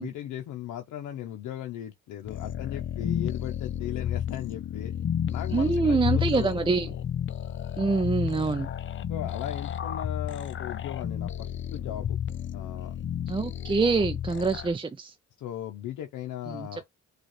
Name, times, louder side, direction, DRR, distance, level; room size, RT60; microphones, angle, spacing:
voice 1, 0.0-4.9 5.3-6.6 9.1-13.0 15.4-16.8, left 11 dB, 80° left, 0.7 m, -37 dB
sound 1, 2.2-14.7, left 9 dB, 40° left, 0.5 m, -32 dB
voice 2, 5.5-6.9 7.8-8.7 13.3-15.1 16.5-16.9, right 4 dB, 15° right, 0.5 m, -26 dB
6.2 x 2.5 x 3.1 m
cardioid pair, 90°, 30 cm